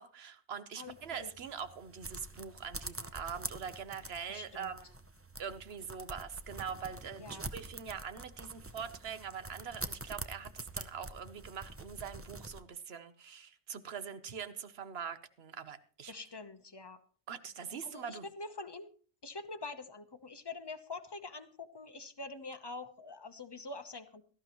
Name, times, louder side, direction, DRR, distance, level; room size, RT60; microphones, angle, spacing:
voice 1, 0.0-4.8 5.4-16.1 17.3-18.3, right 7 dB, 55° right, 12 dB, 1.1 m, -43 dB
voice 2, 0.8-1.3 4.3-4.7 7.2-7.5 16.1-17.0 17.8-18.9 19.2-24.2, left 3 dB, 20° left, 8 dB, 0.9 m, -45 dB
sound 1, 0.9-12.6, right 2 dB, 20° right, 0.4 m, -46 dB
17.5 x 13.0 x 3.0 m, 0.42 s
omnidirectional pair, 1.3 m